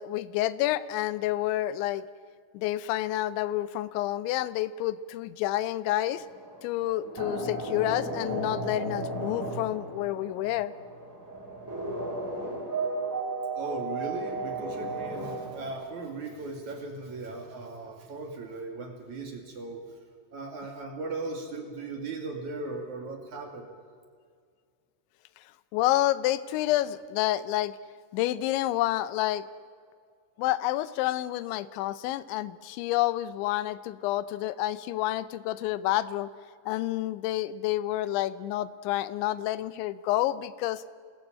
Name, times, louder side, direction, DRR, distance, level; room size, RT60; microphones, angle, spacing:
voice 1, 0.0-2.0 2.5-6.3 6.6-10.7 25.7-27.8 28.1-29.4 30.4-36.3 36.7-40.8, left 14 dB, 80° left, 16 dB, 2.8 m, -29 dB
sound 1, 6.1-15.7, right 2 dB, 5° right, 6.1 m, -35 dB
voice 2, 13.5-19.8 20.3-23.7, right 3 dB, 45° right, 3 dB, 2.9 m, -38 dB
27.0 x 20.5 x 8.7 m, 2.1 s
omnidirectional pair, 6.0 m